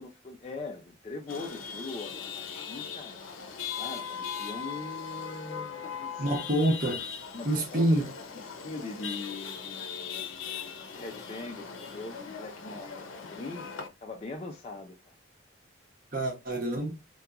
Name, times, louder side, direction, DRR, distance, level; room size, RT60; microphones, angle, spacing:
voice 1, 0.0-3.2 3.4-6.3 7.3-8.0 8.6-15.1, left 3 dB, 30° left, 0.3 m, -42 dB
Chatter / Vehicle horn car horn honking / Traffic noise roadway noise, 1.3-13.9, left 7 dB, 90° left, 0.6 m, -39 dB
voice 2, 6.2-7.1 7.4-8.1 16.1-16.9, right 1 dB, 45° right, 0.8 m, -27 dB
2.8 x 2.2 x 2.3 m
head